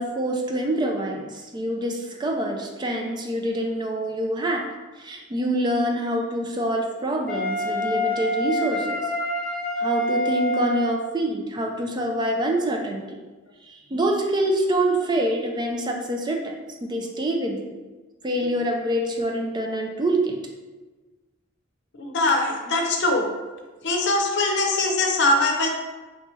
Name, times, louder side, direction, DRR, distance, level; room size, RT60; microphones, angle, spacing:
voice 1, 0.0-4.6 5.0-9.0 9.8-13.2 13.7-17.6 18.2-20.4, right 1 dB, 20° right, 1 dB, 0.4 m, -26 dB
Wind instrument woodwind instrument, 7.3-11.0, left 1 dB, 10° left, 1.3 m, -26 dB
voice 2, 22.0-23.3 23.8-25.7, left 2 dB, 60° left, 2 dB, 0.7 m, -22 dB
4.0 x 3.4 x 3.1 m, 1.2 s
head